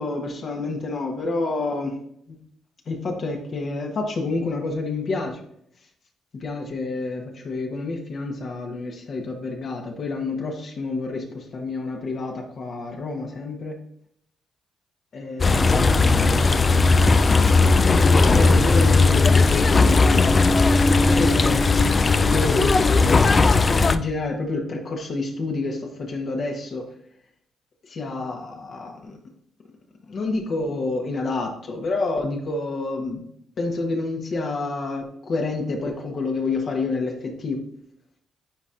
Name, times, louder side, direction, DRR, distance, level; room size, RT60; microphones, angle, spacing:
voice 1, 0.0-2.0 2.3-2.4 2.9-5.4 6.4-13.8 15.1-16.5 17.9-20.4 21.0-21.6 22.3-26.8 27.8-29.2 30.1-33.2 33.6-37.6, left 3 dB, 50° left, 2 dB, 1.1 m, -28 dB
sound 1, 15.4-24.0, left 3 dB, 30° left, 0.3 m, -17 dB
9.7 x 4.2 x 2.5 m, 0.69 s
cardioid pair, 90°, 0 cm